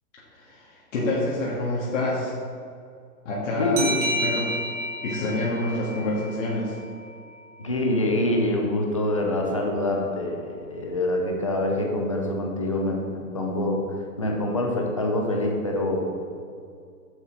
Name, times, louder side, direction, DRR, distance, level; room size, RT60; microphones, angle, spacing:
voice 1, 0.3-2.3 3.3-3.9 4.2-4.5 5.0-6.8, left 2 dB, 50° left, -6 dB, 1.8 m, -27 dB
voice 2, 3.6-3.9 7.6-16.1, left 1 dB, 25° left, 1 dB, 0.4 m, -25 dB
sound 1, 3.8-7.1, equal, 50° right, 1.7 m, -31 dB
7.6 x 7.1 x 3.9 m, 2.4 s
hypercardioid pair, 155°, 48 cm